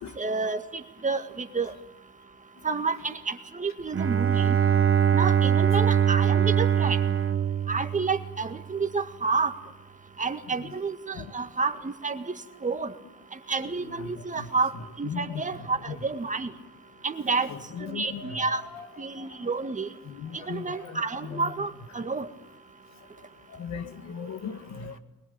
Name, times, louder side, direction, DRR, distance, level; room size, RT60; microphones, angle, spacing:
voice 1, 0.2-1.7 2.6-4.6 5.1-7.0 7.7-9.5 10.2-12.3 12.6-12.9 13.3-14.7 15.0-16.5 17.0-17.5 17.8-18.6 19.0-19.9 20.3-22.3, right 4 dB, 25° right, 2.0 m, -29 dB
Bowed string instrument, 3.9-8.6, right 8 dB, 45° right, 1.0 m, -23 dB
voice 2, 13.6-16.1 17.3-19.6 20.0-21.6 23.5-25.0, left 6 dB, 65° left, 2.2 m, -39 dB
21.5 x 21.5 x 8.9 m
cardioid pair, 90°, 30 cm